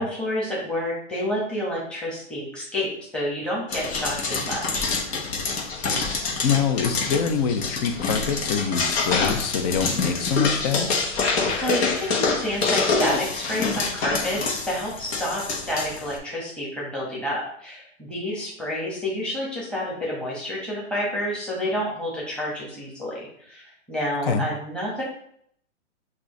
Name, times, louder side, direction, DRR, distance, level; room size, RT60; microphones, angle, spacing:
voice 1, 0.0-4.9 11.6-25.0, left 1 dB, 5° left, -6 dB, 1.3 m, -29 dB
sound 1, 3.7-16.2, left 4 dB, 60° left, 1.3 m, -26 dB
voice 2, 6.4-10.9 24.2-24.5, left 6 dB, 35° left, 8 dB, 0.5 m, -25 dB
5.9 x 2.7 x 3.2 m, 0.67 s
hypercardioid pair, 130°, 37 cm